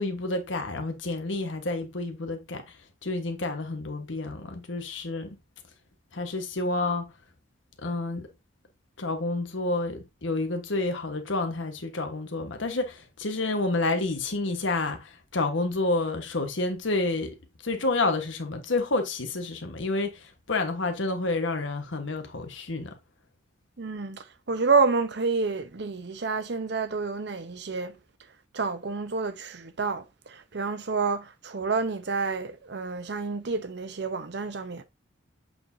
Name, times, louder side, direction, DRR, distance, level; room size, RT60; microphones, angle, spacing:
voice 1, 0.0-2.8 3.0-5.4 6.1-7.1 7.8-8.3 9.0-17.4 17.6-23.0, left 2 dB, 85° left, 1.3 m, -29 dB
voice 2, 23.8-28.0 28.5-34.8, right 4 dB, 60° right, 0.8 m, -29 dB
7.8 x 4.6 x 2.7 m
head